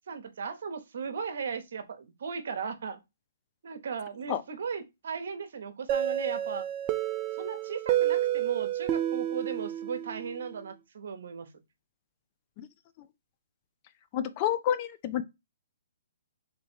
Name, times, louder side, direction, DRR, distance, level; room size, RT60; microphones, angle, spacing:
voice 1, 0.1-3.0 3.6-6.7 7.3-11.5, right 6 dB, 65° right, 0.9 m, -37 dB
sound 1, 5.9-10.6, right 12 dB, 25° right, 0.5 m, -30 dB
voice 2, 14.1-15.2, left 10 dB, 35° left, 0.4 m, -29 dB
3.4 x 3.1 x 4.4 m
hypercardioid pair, 145°, 0 cm